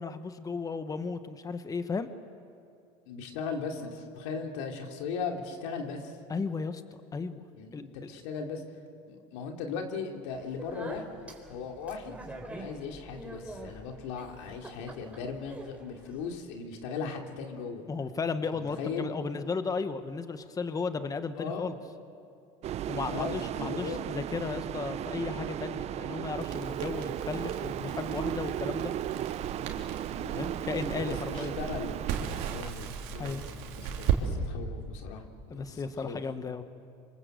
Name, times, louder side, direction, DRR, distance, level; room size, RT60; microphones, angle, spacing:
voice 1, 0.0-2.1 6.3-6.8 7.1-7.5 7.7-7.8 17.9-21.7 22.9-28.9 30.3-31.5 33.2-33.4 35.5-36.6, left 4 dB, 25° left, 10 dB, 1.3 m, -34 dB
voice 2, 3.1-6.1 7.5-8.6 9.1-11.1 11.5-12.2 12.5-17.9 18.5-19.1 21.4-21.8 23.1-24.0 30.1-30.6 30.9-32.2 32.5-36.2, left 5 dB, 80° left, 3 dB, 3.0 m, -38 dB
Speech, 10.3-16.4, right 1 dB, 10° right, 4.3 m, -46 dB
sound 1, 22.6-32.6, right 11 dB, 45° right, 0.7 m, -35 dB
Crackle, 26.3-34.2, right 8 dB, 70° right, 3.1 m, -37 dB
26.0 x 25.5 x 8.0 m, 2.5 s
supercardioid pair, 100°, 15 cm